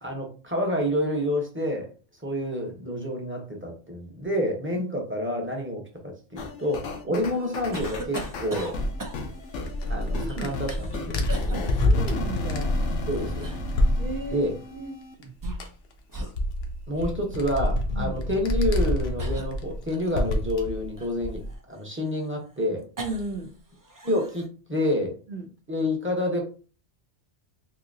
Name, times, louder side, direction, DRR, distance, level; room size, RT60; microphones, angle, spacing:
voice 1, 0.0-1.9 2.2-8.8 9.8-11.7 13.1-13.5 14.3-14.5 16.9-21.4 21.7-22.8 24.0-25.1 25.7-26.5, left 1 dB, 10° right, 0 dB, 0.8 m, -28 dB
sound 1, 6.4-15.2, left 2 dB, 90° left, 1.0 m, -35 dB
sound 2, 7.7-9.5 10.3-11.0 11.3-11.6 12.8-13.8 15.2-15.8 16.1-16.4 17.0-17.1 18.2-18.4 19.2-20.4 21.0-23.5 23.7-24.5, right 1 dB, 35° right, 0.3 m, -38 dB
sound 3, 8.7-14.4 15.2-15.3 15.5-21.5, left 1 dB, 65° left, 0.9 m, -27 dB
voice 2, 10.2-10.5 11.5-12.8 14.0-14.5 14.7-14.9 17.9-18.1 23.0-23.5 25.3-25.5, right 2 dB, 55° right, 4 dB, 0.7 m, -34 dB
3.9 x 2.7 x 2.6 m, 0.37 s
omnidirectional pair, 1.2 m